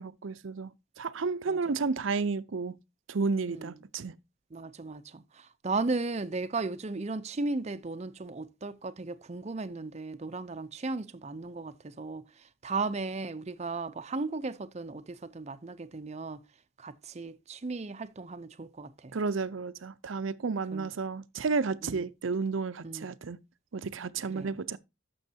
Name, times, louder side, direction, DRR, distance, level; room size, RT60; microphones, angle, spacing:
voice 1, 0.0-2.7 3.1-4.1 19.1-23.4 23.7-24.8, right 4 dB, 75° right, 0.6 m, -32 dB
voice 2, 3.5-3.8 4.5-16.4 16.8-19.1 20.7-20.9 21.8-22.0 22.8-23.1 24.3-24.6, right 3 dB, 35° right, 0.5 m, -36 dB
12.0 x 7.0 x 2.7 m
head